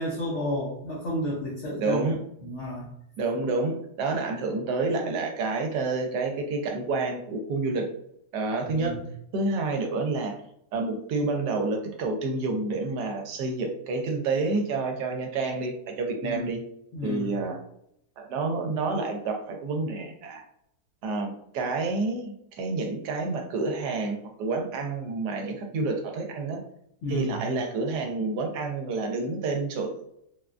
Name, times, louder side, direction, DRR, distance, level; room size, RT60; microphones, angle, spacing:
voice 1, 0.0-2.0 2.4-2.9 8.7-9.0 16.2-16.5 16.9-17.4 27.0-27.4, left 1 dB, 65° left, -4 dB, 0.7 m, -31 dB
voice 2, 1.8-2.2 3.2-7.9 8.3-8.9 9.3-10.3 10.7-16.6 17.0-17.6 18.2-20.4 21.0-26.6 27.1-29.9, right 3 dB, 75° right, 3 dB, 1.1 m, -29 dB
3.6 x 2.2 x 2.4 m, 0.74 s
omnidirectional pair, 1.9 m